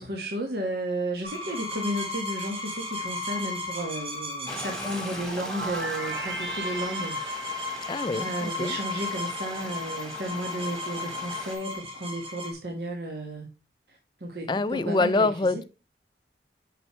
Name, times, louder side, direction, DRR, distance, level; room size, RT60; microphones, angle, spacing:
voice 1, 0.0-7.2 8.1-13.5 13.9-15.6, right 1 dB, 65° right, 1.6 m, -33 dB
sound 1, 1.2-12.5, left 2 dB, 30° right, 1.8 m, -35 dB
Stream, 4.5-11.6, left 1 dB, 5° left, 1.3 m, -41 dB
sound 2, 4.7-9.5, right 2 dB, 85° right, 1.6 m, -37 dB
voice 2, 7.9-8.8 14.5-15.6, left 3 dB, 25° left, 0.4 m, -25 dB
6.7 x 6.2 x 3.1 m
head